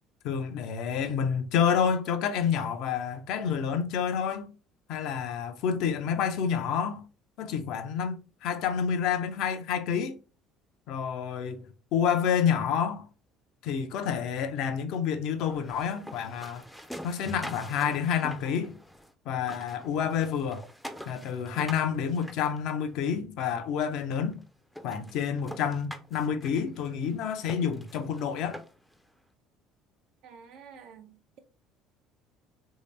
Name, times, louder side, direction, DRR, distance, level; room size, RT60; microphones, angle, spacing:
voice 1, 0.2-4.5 4.9-7.0 7.4-10.2 10.9-13.1 13.6-16.6 17.0-18.7 19.3-20.6 21.1-24.4 24.8-28.6, left 7 dB, 60° left, 0.5 m, -29 dB
sound 1, 15.4-19.1 19.4-23.1 23.8-23.9 24.3-24.4 24.7-29.0, equal, ahead, 0.5 m, -45 dB
voice 2, 19.3-19.7 30.2-31.4, right 5 dB, 60° right, 0.5 m, -51 dB
3.2 x 2.7 x 3.1 m
hypercardioid pair, 60°, 0 cm